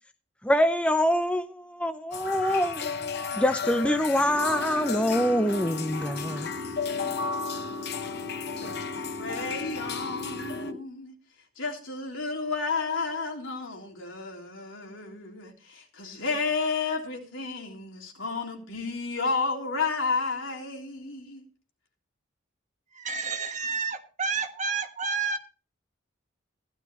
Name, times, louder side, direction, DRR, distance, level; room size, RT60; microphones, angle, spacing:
voice 1, 0.4-6.5, equal, 5° left, 0.6 m, -25 dB
sound 1, 2.1-10.7, left 5 dB, 55° left, 0.9 m, -34 dB
sound 2, 4.2-10.8, left 3 dB, 30° left, 3.3 m, -38 dB
voice 2, 9.2-11.1 11.6-21.5, left 4 dB, 90° left, 3.5 m, -32 dB
voice 3, 22.9-25.4, right 4 dB, 40° right, 1.4 m, -30 dB
15.5 x 12.0 x 3.1 m
head